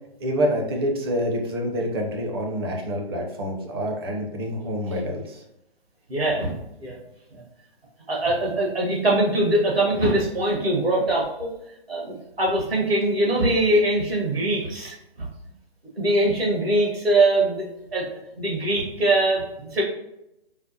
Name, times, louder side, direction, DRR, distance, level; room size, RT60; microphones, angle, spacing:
voice 1, 0.2-5.4, equal, 25° right, 1 dB, 0.5 m, -27 dB
voice 2, 6.1-6.5 6.8-7.0 7.3-7.4 8.1-11.5 11.9-14.9 16.0-17.7 17.9-18.1 18.4-19.8, right 1 dB, 75° right, -2 dB, 1.4 m, -22 dB
4.9 x 2.0 x 2.7 m, 0.84 s
figure-of-eight pair, 130°, 31 cm